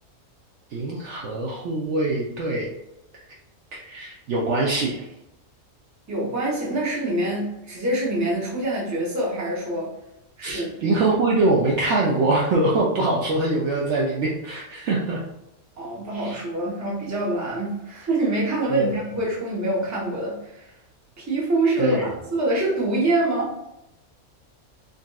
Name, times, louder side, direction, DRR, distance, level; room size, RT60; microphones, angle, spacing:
voice 1, 0.7-2.7 3.9-5.1 10.4-15.2 16.1-16.4 18.7-19.0 21.8-22.0, right 2 dB, 65° right, -3 dB, 0.8 m, -23 dB
voice 2, 6.1-9.9 10.4-10.9 15.8-20.7 21.2-23.6, right 1 dB, 15° right, -4 dB, 0.7 m, -25 dB
3.9 x 2.5 x 2.3 m, 0.88 s
omnidirectional pair, 1.5 m